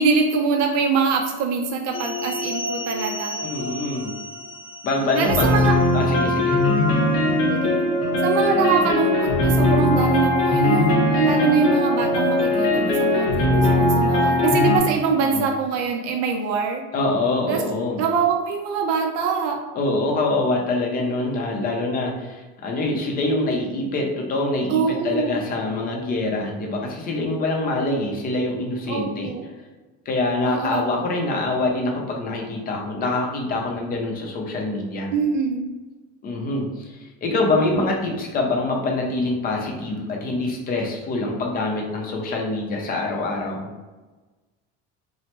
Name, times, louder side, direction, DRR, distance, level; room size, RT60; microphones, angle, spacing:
voice 1, 0.0-3.3 5.2-5.8 7.5-7.9 8.2-16.8 17.5-17.6 18.0-19.6 24.7-25.4 28.9-29.4 30.5-30.8 35.1-35.7, right 5 dB, 60° right, 2 dB, 0.4 m, -23 dB
sound 1, 1.9-14.8, left 1 dB, 90° left, 0.9 m, -21 dB
voice 2, 3.4-4.1 4.8-5.5 5.9-6.6 15.2-15.4 16.9-18.0 19.8-29.3 30.1-35.1 36.2-43.7, left 2 dB, 30° left, 0 dB, 0.5 m, -25 dB
3.1 x 2.0 x 2.9 m, 1.2 s
cardioid pair, 155°, 30 cm